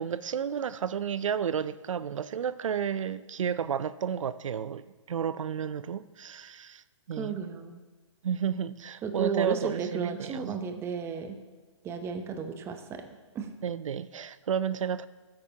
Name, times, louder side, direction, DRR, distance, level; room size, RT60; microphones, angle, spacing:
voice 1, 0.0-7.4 8.2-10.6 13.6-15.1, right 8 dB, 85° right, 0.4 m, -32 dB
voice 2, 7.2-7.8 9.0-11.4 11.8-13.1 13.3-13.5, right 5 dB, 15° right, 0.7 m, -34 dB
16.0 x 8.7 x 2.8 m
hypercardioid pair, 140°, 16 cm